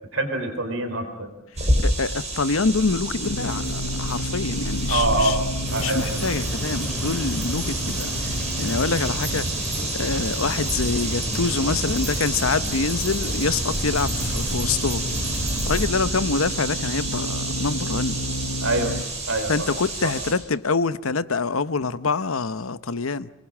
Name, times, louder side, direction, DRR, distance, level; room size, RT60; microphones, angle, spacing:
voice 1, 0.1-1.3 4.9-5.4 5.7-6.2 18.6-18.9 19.3-19.5 20.0-20.1, right 2 dB, 75° right, 3.9 m, -24 dB
sound 1, 1.6-20.3, right 2 dB, 35° right, 7.9 m, -29 dB
voice 2, 1.8-5.4 5.8-9.5 9.9-15.3 15.7-18.2 19.5-23.3, left 4 dB, 85° left, 0.9 m, -26 dB
sound 2, 2.8-19.0, left 1 dB, 65° left, 1.4 m, -33 dB
sound 3, 5.7-15.9, equal, ahead, 3.9 m, -32 dB
27.5 x 20.5 x 7.5 m
head